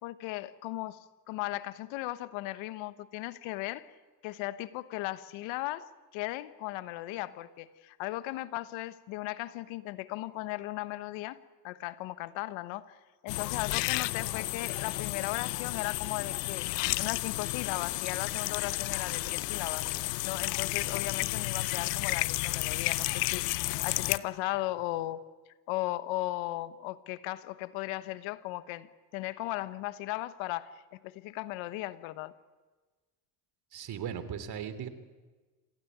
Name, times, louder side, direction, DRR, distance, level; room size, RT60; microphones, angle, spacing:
voice 1, 0.0-3.9 4.2-11.4 11.6-13.0 13.2-16.7 17.0-19.9 20.2-25.2 25.7-28.9 29.1-32.4, left 17 dB, 75° left, 14 dB, 1.2 m, -37 dB
sound 1, 13.3-24.2, left 20 dB, 90° left, 0.8 m, -32 dB
voice 2, 33.7-34.9, right 8 dB, 50° right, 11 dB, 3.1 m, -37 dB
27.5 x 16.0 x 9.4 m, 1.3 s
supercardioid pair, 80°, 47 cm